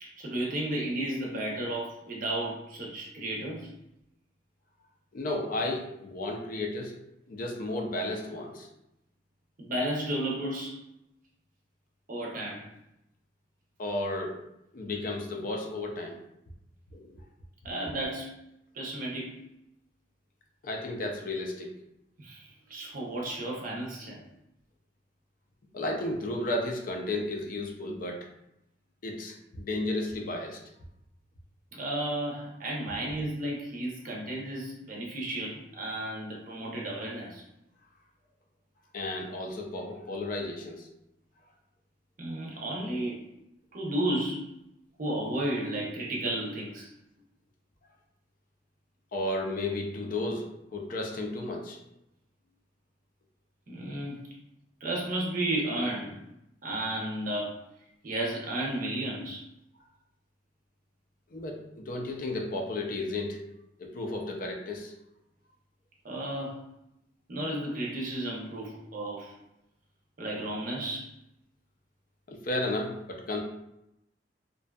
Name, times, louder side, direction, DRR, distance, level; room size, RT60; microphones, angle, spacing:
voice 1, 0.0-3.7 9.6-10.8 12.1-12.7 17.6-18.4 18.7-19.4 22.2-24.2 31.7-37.4 42.2-43.2 43.7-44.5 45.0-46.9 53.7-54.2 54.8-56.2 56.6-57.6 58.0-59.4 66.0-66.6 67.3-69.3 70.2-71.1, right 1 dB, 50° right, -2 dB, 0.6 m, -33 dB
voice 2, 5.1-6.9 7.3-8.7 13.8-14.4 14.7-16.2 16.9-17.2 18.0-18.1 20.6-21.7 25.7-28.3 29.0-30.6 38.9-40.9 49.1-51.8 61.3-63.4 63.8-64.9 72.3-73.4, left 2 dB, 50° left, 1 dB, 0.4 m, -33 dB
2.5 x 2.2 x 2.2 m, 0.83 s
head